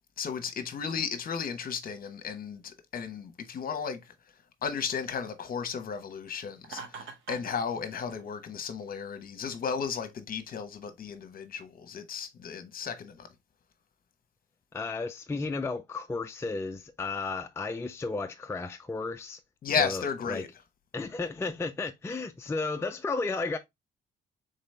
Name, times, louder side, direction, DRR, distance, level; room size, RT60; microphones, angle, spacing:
voice 1, 0.2-4.0 4.6-13.3 19.6-20.5, left 6 dB, 50° left, 1.0 m, -34 dB
Laughter, 6.6-7.6, right 5 dB, 75° right, 1.3 m, -42 dB
voice 2, 14.7-19.4 19.7-20.5 20.9-23.6, left 3 dB, 15° left, 0.4 m, -33 dB
4.0 x 3.9 x 3.2 m
cardioid pair, 110°, 19 cm